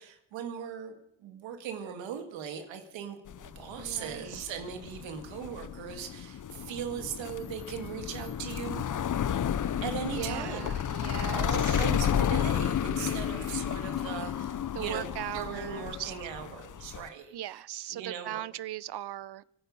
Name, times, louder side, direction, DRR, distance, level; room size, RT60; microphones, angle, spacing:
voice 1, 0.0-8.9 9.8-10.7 11.3-17.4 17.9-18.4, right 8 dB, 85° right, 2.1 m, -39 dB
sound 1, 3.3-17.1, left 9 dB, 45° left, 0.7 m, -32 dB
voice 2, 3.7-4.4 10.1-11.8 13.0-13.8 14.7-16.1 17.3-19.4, right 13 dB, 60° right, 0.7 m, -39 dB
24.5 x 9.7 x 5.4 m
supercardioid pair, 45°, 44 cm